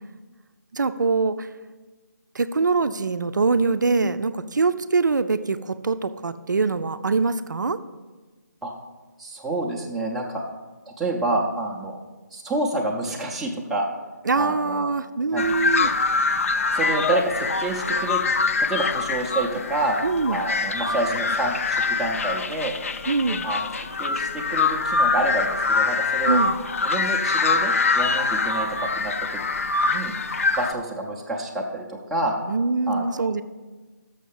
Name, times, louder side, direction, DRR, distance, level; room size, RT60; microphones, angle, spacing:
voice 1, 0.7-1.5 2.3-7.8 14.3-15.9 20.0-20.5 23.1-23.5 26.3-26.5 32.5-33.4, right 4 dB, 85° right, 11 dB, 0.5 m, -23 dB
voice 2, 9.2-10.4 10.9-12.0 12.3-13.9 14.3-14.9 15.3-16.0 16.7-18.2 18.6-20.0 20.3-22.8 23.4-23.7 24.0-26.4 26.8-28.7 29.0-29.1 29.8-30.2 30.6-32.4 32.9-33.3, right 2 dB, ahead, -4 dB, 0.5 m, -28 dB
sound 1, 15.4-30.7, left 4 dB, 50° left, 0.5 m, -24 dB
6.5 x 6.3 x 7.0 m, 1.3 s
figure-of-eight pair, 165°, 10 cm